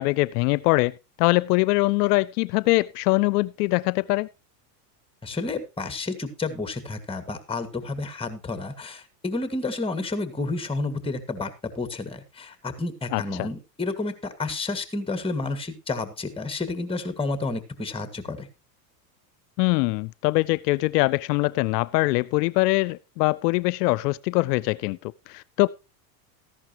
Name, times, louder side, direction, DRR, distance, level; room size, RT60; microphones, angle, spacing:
voice 1, 0.0-4.3 13.1-13.5 19.6-25.7, left 22 dB, 70° left, 0.5 m, -23 dB
voice 2, 5.2-18.5, left 3 dB, 10° left, 1.8 m, -30 dB
14.0 x 11.0 x 2.9 m
supercardioid pair, 110°, 49 cm